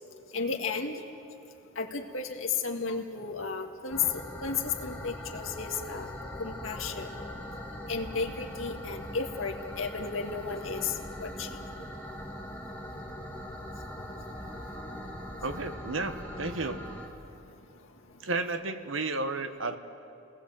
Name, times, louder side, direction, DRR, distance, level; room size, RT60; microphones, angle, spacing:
voice 1, 0.3-1.0 1.8-6.1 6.4-7.2 7.9-11.6, left 5 dB, 85° left, 4 dB, 1.9 m, -33 dB
sound 1, 3.9-17.1, equal, 10° left, 2.3 m, -41 dB
voice 2, 15.4-16.8 18.2-19.8, right 3 dB, 80° right, 8 dB, 1.3 m, -32 dB
29.0 x 19.5 x 7.7 m, 2.9 s
head